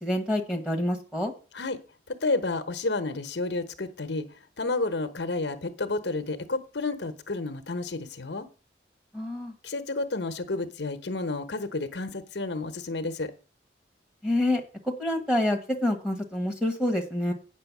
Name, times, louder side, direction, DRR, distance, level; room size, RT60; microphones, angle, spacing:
voice 1, 0.0-1.3 9.1-9.5 14.2-17.3, left 1 dB, 5° right, 1 dB, 1.5 m, -27 dB
voice 2, 2.2-4.3 4.6-8.5 9.6-13.3, left 3 dB, 70° left, 9 dB, 1.0 m, -30 dB
8.9 x 6.2 x 6.1 m, 0.35 s
head